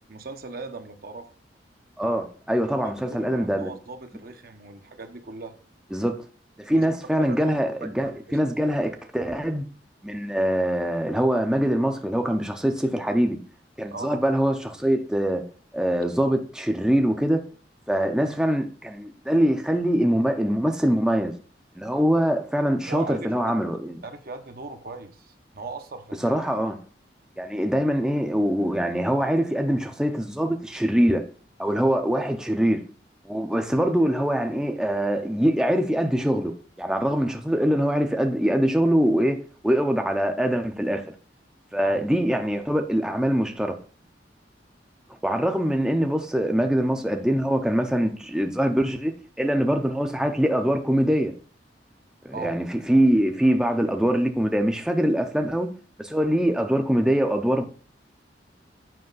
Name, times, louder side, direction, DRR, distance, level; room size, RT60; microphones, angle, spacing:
voice 1, 0.1-1.3 2.6-5.6 6.7-6.9 7.3-8.4 13.9-14.2 18.3-18.4 22.9-23.6 24.0-26.4 33.6-33.8 41.7-42.0 52.3-52.5, right 3 dB, 60° right, 0.9 m, -39 dB
voice 2, 2.0-3.7 5.9-6.2 6.6-9.6 10.0-13.4 13.8-15.4 15.7-17.4 17.9-21.3 21.8-24.0 26.2-26.8 27.4-31.2 31.6-32.8 33.2-39.4 39.6-41.0 41.7-43.7 45.2-49.1 49.4-51.3 52.2-55.7 56.0-57.6, equal, 5° right, 0.5 m, -23 dB
7.7 x 5.1 x 4.0 m
head